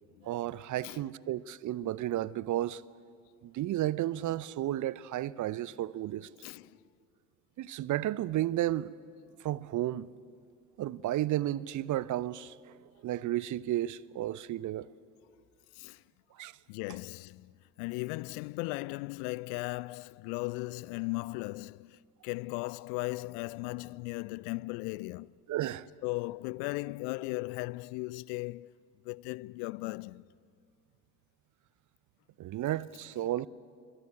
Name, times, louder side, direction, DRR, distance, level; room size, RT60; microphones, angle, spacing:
voice 1, 0.2-2.8 3.4-6.3 7.6-8.9 9.4-10.1 10.8-12.5 13.0-14.9 16.4-16.5 25.5-25.9 32.4-33.5, right 14 dB, 40° right, 0.6 m, -32 dB
voice 2, 6.4-6.8 15.7-16.0 16.7-17.5 17.8-25.3 26.0-28.7 29.0-30.3, left 23 dB, 60° left, 0.5 m, -37 dB
23.0 x 17.5 x 9.5 m
figure-of-eight pair, 55°, 46 cm